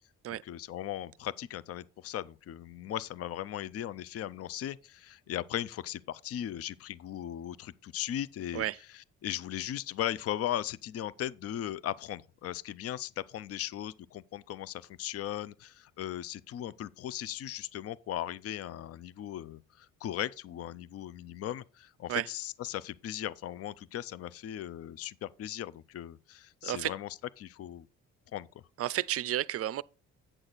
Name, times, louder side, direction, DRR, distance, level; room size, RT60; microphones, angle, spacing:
voice 1, 0.4-8.6 9.2-27.1 27.4-27.9 28.3-28.5, left 11 dB, 50° left, 0.5 m, -38 dB
voice 2, 26.6-26.9 28.8-29.8, right 13 dB, 50° right, 0.4 m, -31 dB
8.9 x 6.4 x 4.0 m
cardioid pair, 90°, 30 cm